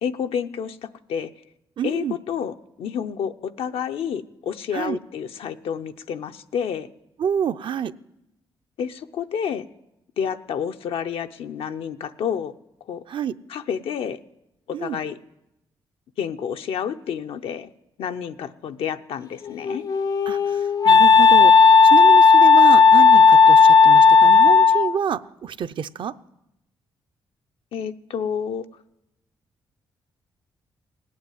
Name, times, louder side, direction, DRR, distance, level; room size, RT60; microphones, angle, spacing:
voice 1, 0.0-1.3 1.8-6.9 8.8-9.6 10.2-12.5 12.9-13.0 13.5-14.2 14.7-15.2 16.2-17.7 18.0-19.8 27.7-28.6, left 7 dB, 85° left, 7 dB, 0.6 m, -29 dB
voice 2, 1.8-2.2 4.7-5.0 7.2-7.9 13.1-13.3 14.7-15.0 20.3-20.4 20.9-21.5 21.9-26.1, right 8 dB, 60° right, 13 dB, 0.5 m, -27 dB
Wind instrument woodwind instrument, 19.5-24.9, left 5 dB, 45° left, 0.5 m, -13 dB
18.0 x 8.7 x 9.1 m, 0.87 s
cardioid pair, 90°, 9 cm